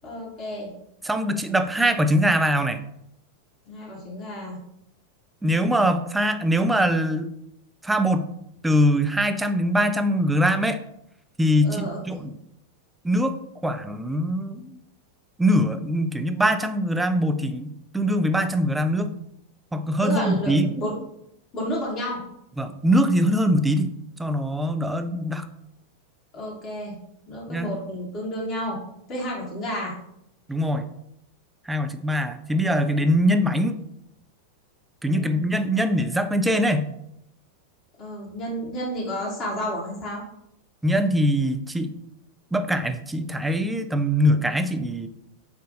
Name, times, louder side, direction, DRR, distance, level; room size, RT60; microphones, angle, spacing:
voice 1, 0.0-0.7 3.7-4.6 11.6-12.2 20.0-20.9 21.5-22.2 26.3-27.0 27.3-28.8 29.1-29.9 35.0-35.4 38.0-40.2, equal, 35° left, -4 dB, 1.3 m, -31 dB
voice 2, 1.0-2.8 5.4-7.3 7.8-8.3 8.6-10.8 11.4-12.3 13.0-13.4 13.6-14.8 15.4-19.1 19.7-20.7 22.6-23.9 24.2-25.5 27.5-27.7 30.5-30.9 31.7-33.8 35.0-36.9 40.8-41.9 42.5-45.1, equal, 5° right, 8 dB, 0.3 m, -22 dB
5.5 x 2.5 x 2.6 m, 0.77 s
figure-of-eight pair, 90°, 0 cm